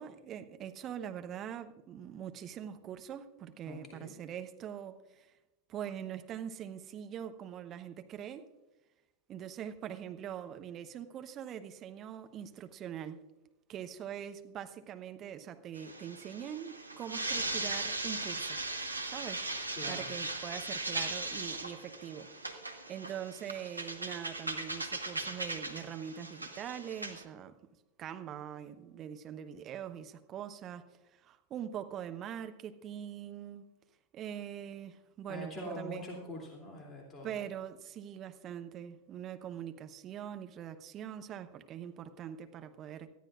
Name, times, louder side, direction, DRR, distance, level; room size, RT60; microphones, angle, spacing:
voice 1, 0.0-5.3 5.7-8.5 9.3-13.2 13.7-18.6 19.0-19.4 19.9-22.3 22.9-27.6 28.0-33.7 34.1-36.0 37.2-43.1, right 9 dB, 30° right, 0.9 m, -43 dB
voice 2, 3.7-4.1 19.8-20.1 35.3-37.3, left 1 dB, 20° left, 2.8 m, -44 dB
sound 1, 15.8-27.2, right 2 dB, 85° right, 1.1 m, -38 dB
19.5 x 13.5 x 2.5 m
figure-of-eight pair, 90°, 0 cm